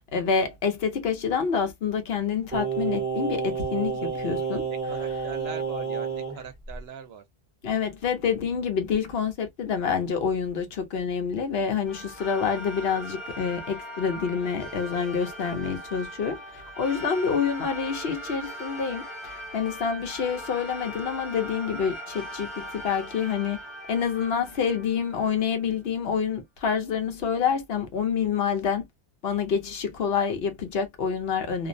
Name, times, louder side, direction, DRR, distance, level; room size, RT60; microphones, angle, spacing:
voice 1, 0.1-5.3 7.6-23.6 23.9-28.8 29.2-31.7, left 6 dB, 70° left, 0.9 m, -27 dB
Singing, 2.5-6.4 6.7-6.8, right 6 dB, 10° right, 0.8 m, -30 dB
voice 2, 4.9-7.2, right 7 dB, 70° right, 0.8 m, -41 dB
sound 1, 11.8-25.6, equal, 30° left, 0.6 m, -40 dB
2.4 x 2.0 x 2.5 m
omnidirectional pair, 1.1 m